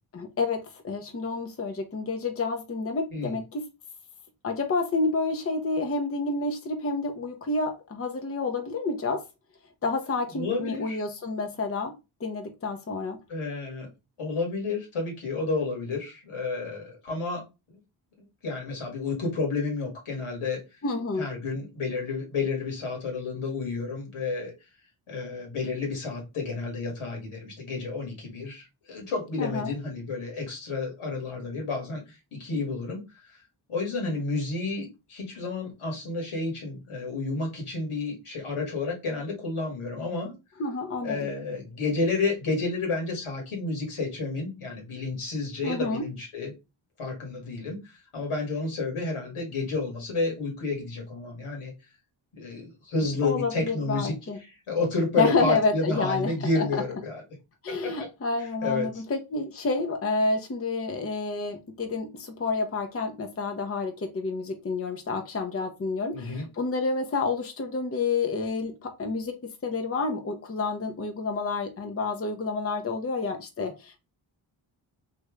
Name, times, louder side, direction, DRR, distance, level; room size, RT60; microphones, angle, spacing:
voice 1, 0.1-3.6 4.4-9.2 9.8-11.9 12.2-13.2 20.8-21.3 29.4-29.7 40.6-41.3 45.6-46.0 53.2-54.4 55.2-56.6 57.6-69.3 69.6-74.0, left 3 dB, 30° left, 0.7 m, -29 dB
voice 2, 10.3-11.0 13.3-13.9 14.2-17.4 18.4-20.6 21.2-24.5 25.1-33.2 33.7-40.3 41.0-46.5 47.0-51.7 52.4-54.1 54.4-57.2 57.7-58.1 58.4-59.0 66.1-66.5, left 3 dB, 80° left, 1.7 m, -31 dB
3.1 x 2.6 x 3.5 m
cardioid pair, 45°, 50 cm